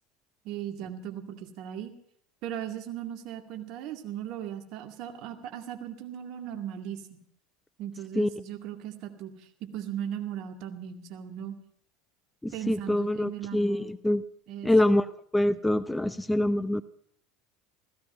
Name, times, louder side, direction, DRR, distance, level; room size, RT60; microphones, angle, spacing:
voice 1, 0.4-1.9 2.4-7.2 7.8-11.6 12.5-13.9 14.5-14.7, right 10 dB, 55° right, 6 dB, 2.2 m, -38 dB
voice 2, 12.4-14.2 14.6-15.1 15.3-16.8, left 1 dB, 5° left, 13 dB, 0.7 m, -25 dB
16.0 x 14.5 x 5.5 m, 0.67 s
hypercardioid pair, 75°, 0 cm